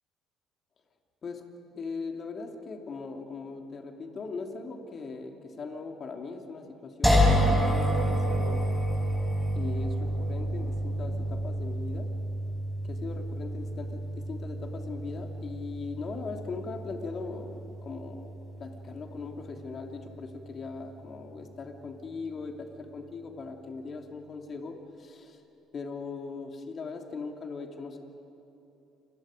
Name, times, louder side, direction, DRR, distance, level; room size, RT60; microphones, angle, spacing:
voice 1, 1.7-8.7 9.5-12.1 12.8-18.3 18.6-25.4 25.7-28.0, left 4 dB, 45° left, 4 dB, 2.8 m, -39 dB
sound 1, 7.0-20.1, equal, 5° left, 6.2 m, -29 dB
29.0 x 25.5 x 5.2 m, 2.9 s
hypercardioid pair, 55°, 0 cm